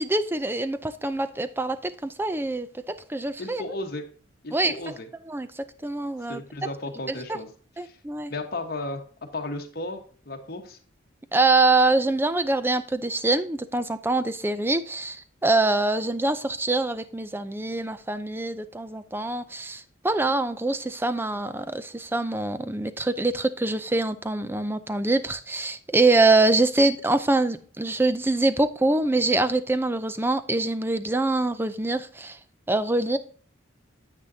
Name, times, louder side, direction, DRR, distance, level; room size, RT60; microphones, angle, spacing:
voice 1, 0.0-2.7 3.1-3.6 4.5-4.7 5.3-6.4 7.8-8.3 11.3-32.4 32.7-33.2, right 2 dB, 10° right, 12 dB, 0.5 m, -24 dB
voice 2, 3.4-4.1 4.4-5.1 6.3-7.5 7.8-8.0 8.3-9.0 9.3-10.8, left 2 dB, 50° left, 3 dB, 1.3 m, -34 dB
9.6 x 8.2 x 2.8 m, 0.44 s
head